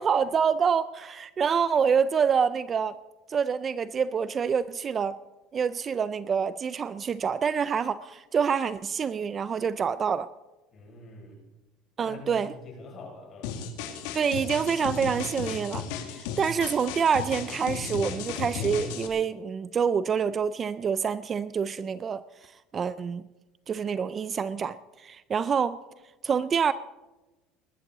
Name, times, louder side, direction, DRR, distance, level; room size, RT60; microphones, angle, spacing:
voice 1, 0.0-3.0 3.3-5.2 5.5-10.3 12.0-12.5 14.1-15.9 16.2-22.2 22.7-23.2 23.7-25.8 26.2-26.7, right 6 dB, 30° right, 15 dB, 0.4 m, -26 dB
voice 2, 10.7-11.4 12.0-13.6, left 3 dB, 35° left, -1 dB, 6.0 m, -45 dB
sound 1, 13.4-19.1, left 7 dB, 85° left, 2.0 m, -35 dB
20.0 x 12.5 x 4.0 m, 1.1 s
cardioid pair, 145°, 0 cm